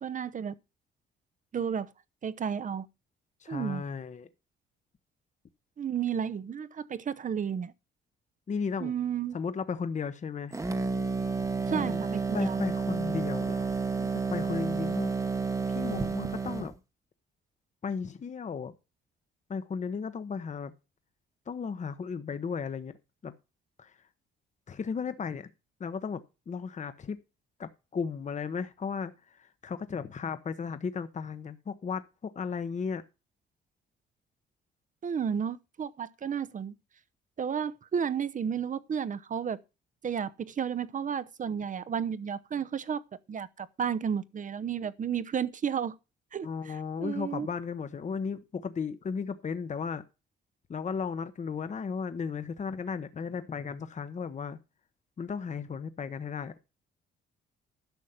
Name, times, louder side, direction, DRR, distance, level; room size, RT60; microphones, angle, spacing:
voice 1, 0.0-0.5 1.5-1.9 2.2-2.9 3.5-3.8 5.8-7.7 8.8-9.4 11.7-12.6 35.0-36.7 37.4-39.6 40.0-43.0 43.3-45.9 46.3-47.5, right 7 dB, 40° right, 0.8 m, -32 dB
voice 2, 3.4-4.3 8.5-8.9 9.3-10.5 11.7-12.0 12.3-13.7 14.0-15.1 15.7-16.7 17.8-18.7 19.5-20.7 21.5-22.9 23.2-23.3 23.8-23.9 24.7-25.5 25.8-27.2 27.6-33.0 46.4-50.0 50.7-54.6 55.2-56.7, left 6 dB, 35° left, 1.0 m, -35 dB
sound 1, 10.5-16.7, right 4 dB, 15° right, 1.0 m, -31 dB
11.5 x 6.4 x 5.7 m
cardioid pair, 90°, 20 cm